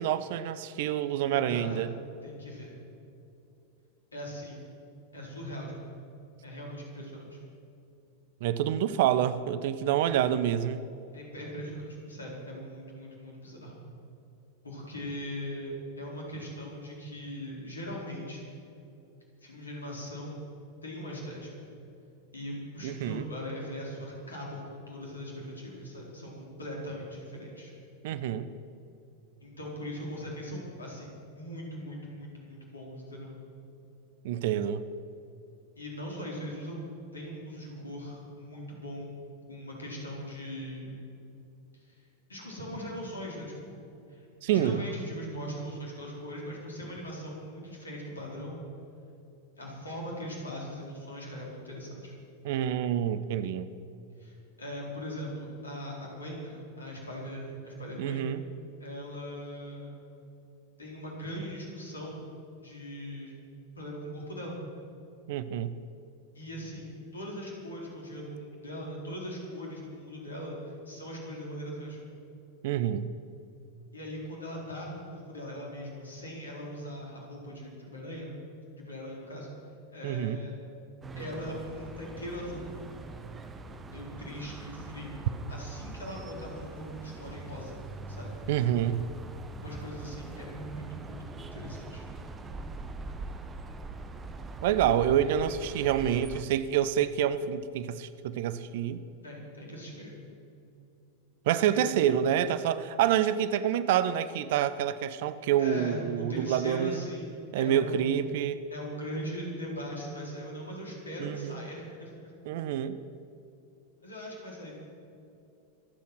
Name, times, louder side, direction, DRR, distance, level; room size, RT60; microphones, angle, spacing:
voice 1, 0.0-1.9 8.4-10.8 22.8-23.2 28.0-28.5 34.2-34.8 44.4-44.8 52.4-53.7 58.0-58.4 65.3-65.7 72.6-73.1 80.0-80.4 88.5-89.0 94.6-99.0 101.5-107.0 107.5-108.6 111.2-111.6 112.5-113.0, right 10 dB, 50° right, 14 dB, 0.7 m, -27 dB
voice 2, 1.2-1.8 2.2-2.7 4.1-4.6 5.1-5.8 6.4-7.4 11.1-13.8 14.6-18.5 19.4-20.5 20.8-21.6 22.3-27.7 29.4-33.4 35.8-36.8 37.1-39.1 39.5-41.0 41.7-42.0 42.3-43.8 44.1-44.3 44.5-48.6 49.6-52.1 54.2-58.3 58.8-60.0 60.8-62.3 62.6-63.3 63.7-64.6 66.3-72.0 73.9-78.4 78.8-79.5 79.9-80.5 81.1-82.7 83.9-85.2 85.5-87.8 88.1-88.3 89.6-92.0 99.2-100.1 101.8-101.9 105.6-108.1 108.7-112.3 114.0-114.7, equal, 75° left, -2 dB, 4.2 m, -40 dB
sound 1, 81.0-96.4, right 3 dB, 20° right, 1.1 m, -42 dB
24.5 x 8.4 x 6.1 m, 2.8 s
figure-of-eight pair, 90°, 0 cm